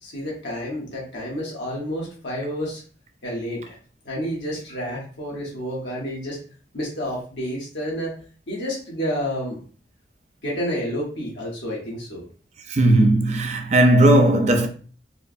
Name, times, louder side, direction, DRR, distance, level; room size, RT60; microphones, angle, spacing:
voice 1, 0.0-2.8 3.2-3.6 4.0-6.4 6.7-8.1 8.5-9.6 10.4-12.2, equal, 85° left, 1.2 m, -29 dB
voice 2, 12.7-14.7, right 1 dB, 40° right, 0.5 m, -16 dB
4.4 x 2.1 x 2.5 m
head